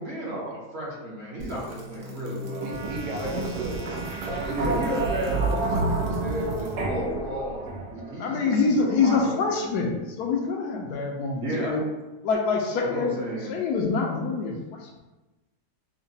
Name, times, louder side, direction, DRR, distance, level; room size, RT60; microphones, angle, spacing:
voice 1, 0.0-2.8 3.2-3.6 4.4-7.6 7.9-9.6 11.4-11.7 12.9-13.5, equal, 50° right, -4 dB, 0.9 m, -33 dB
sound 1, 1.4-8.1, right 2 dB, 90° right, 1.4 m, -30 dB
voice 2, 2.6-4.9 11.5-11.9, right 2 dB, 75° right, 0 dB, 1.1 m, -35 dB
voice 3, 8.2-11.8 12.2-13.1 13.5-15.0, left 4 dB, 75° left, 1 dB, 1.1 m, -25 dB
5.6 x 2.2 x 2.7 m, 1.1 s
omnidirectional pair, 1.8 m